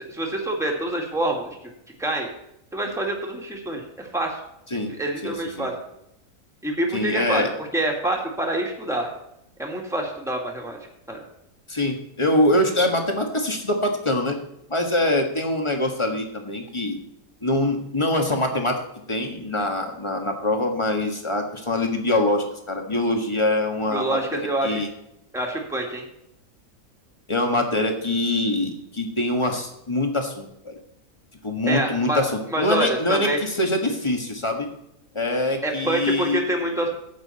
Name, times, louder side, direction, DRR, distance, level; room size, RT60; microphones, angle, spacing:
voice 1, 0.0-1.7 2.0-2.3 2.7-4.4 4.9-5.7 6.6-7.4 7.7-9.1 9.6-10.8 11.1-11.2 23.9-24.8 25.3-26.0 31.7-32.2 32.5-33.4 35.6-36.9, right 1 dB, ahead, 0 dB, 2.1 m, -26 dB
voice 2, 5.2-5.7 6.9-7.5 11.7-14.4 14.7-17.0 17.4-18.8 19.1-24.9 27.3-30.8 31.4-34.7 35.1-36.4, left 1 dB, 20° left, 3 dB, 1.6 m, -24 dB
12.5 x 8.8 x 4.3 m, 0.80 s
omnidirectional pair, 1.5 m